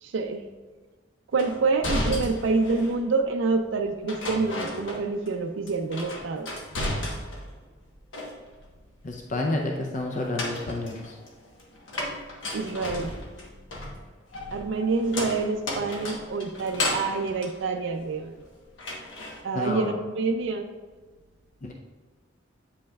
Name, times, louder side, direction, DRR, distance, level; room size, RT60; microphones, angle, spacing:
voice 1, 0.0-0.4 1.3-6.5 12.5-13.1 14.5-18.4 19.4-20.7, right 4 dB, 70° right, 5 dB, 0.4 m, -27 dB
sound 1, 1.4-3.0 4.1-5.4 5.7-7.5 7.9-8.7 10.1-18.4 18.8-19.4, left 1 dB, 70° left, 1.1 m, -34 dB
voice 2, 9.0-11.1 19.5-19.9 21.6-21.7, left 2 dB, 40° left, 1 dB, 0.6 m, -29 dB
8.4 x 5.2 x 2.3 m, 1.4 s
head